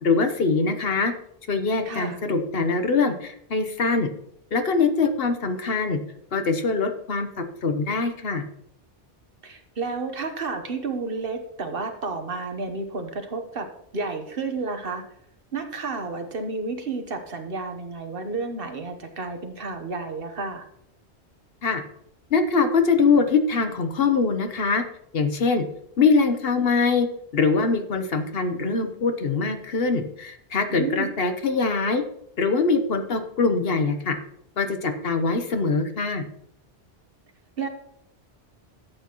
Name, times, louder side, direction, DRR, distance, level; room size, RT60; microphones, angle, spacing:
voice 1, 0.0-1.1 1.5-4.1 4.5-6.0 6.3-8.4 21.6-21.8 22.3-24.8 25.1-25.6 26.0-27.1 27.3-32.0 32.4-34.2 34.6-36.2, left 4 dB, 60° left, 7 dB, 1.1 m, -23 dB
voice 2, 1.8-2.2 9.4-13.7 13.9-15.0 15.5-20.7 30.7-31.1 37.6-37.7, right 4 dB, 55° right, 6 dB, 1.2 m, -31 dB
12.5 x 8.3 x 3.0 m, 0.71 s
omnidirectional pair, 1.2 m